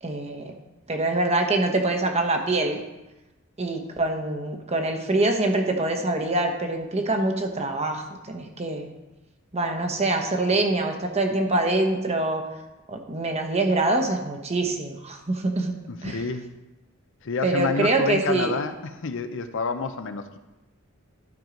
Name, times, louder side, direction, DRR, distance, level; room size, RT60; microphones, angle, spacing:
voice 1, 0.0-0.5 0.9-2.8 3.6-8.9 9.5-12.4 12.9-15.7 16.0-16.2 17.4-18.5, right 2 dB, 30° right, 3 dB, 1.0 m, -25 dB
voice 2, 15.9-16.5 17.2-20.4, left 4 dB, 65° left, 8 dB, 0.6 m, -29 dB
12.0 x 4.6 x 5.1 m, 1.0 s
head